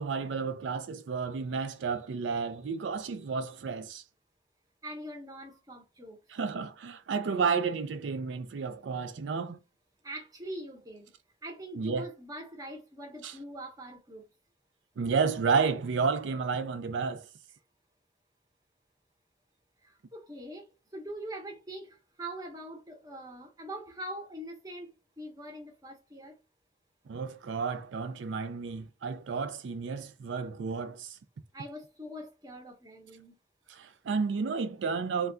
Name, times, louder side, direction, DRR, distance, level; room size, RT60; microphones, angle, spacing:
voice 1, 0.0-4.0 6.3-9.6 11.7-12.1 13.2-13.4 15.0-17.3 27.1-31.2 33.7-35.3, right 5 dB, 90° right, 0.4 m, -31 dB
voice 2, 4.8-6.2 10.0-11.1 11.4-14.2 19.8-20.7 20.9-26.4 31.5-33.4, right 1 dB, 20° right, 0.6 m, -43 dB
2.3 x 2.2 x 3.7 m
head